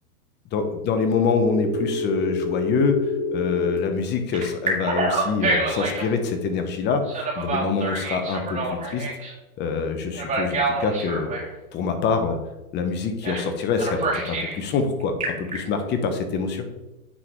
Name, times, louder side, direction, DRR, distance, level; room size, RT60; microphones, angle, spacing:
voice 1, 0.5-3.0 3.3-7.0 7.4-9.1 9.6-11.4 11.7-12.4 12.7-16.6, left 5 dB, 25° left, 7 dB, 0.9 m, -25 dB
Telephone, 1.5-3.8 4.3-6.1 7.1-9.3 10.1-11.5 13.2-13.5 13.8-14.6 15.0-15.6, right 1 dB, 20° right, 2.0 m, -27 dB
9.7 x 3.8 x 3.1 m, 1.0 s
hypercardioid pair, 135°, 43 cm